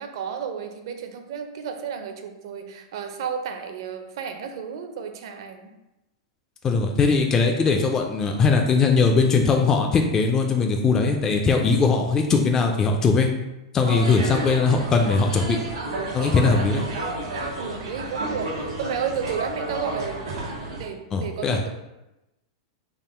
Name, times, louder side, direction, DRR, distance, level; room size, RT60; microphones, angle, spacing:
voice 1, 0.0-5.7 17.6-20.3 20.8-21.7, right 7 dB, 65° right, 6 dB, 0.5 m, -32 dB
voice 2, 6.6-13.3 13.7-15.6 16.1-16.8 21.1-21.6, left 4 dB, 20° left, 3 dB, 0.3 m, -20 dB
sound 1, 13.8-20.9, right 2 dB, 85° right, 1.2 m, -31 dB
3.6 x 2.1 x 4.2 m, 0.96 s
supercardioid pair, 140°, 3 cm